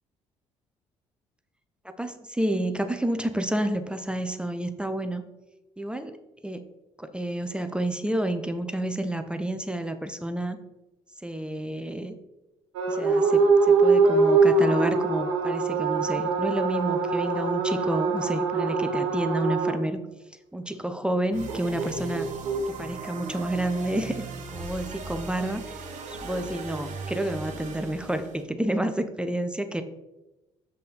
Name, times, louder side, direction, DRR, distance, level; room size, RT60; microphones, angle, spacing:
voice 1, 2.0-5.2 5.8-6.2 6.4-6.6 7.0-10.6 11.2-12.1 12.9-20.0 20.5-22.3 22.7-25.6 26.1-29.8, right 1 dB, 5° right, 8 dB, 0.7 m, -29 dB
sound 1, 12.7-19.8 21.5-22.6, right 4 dB, 70° right, 1.2 m, -23 dB
sound 2, 21.3-28.4, right 4 dB, 50° right, 1.4 m, -38 dB
8.0 x 5.3 x 4.1 m, 1.0 s
figure-of-eight pair, 50°, 16 cm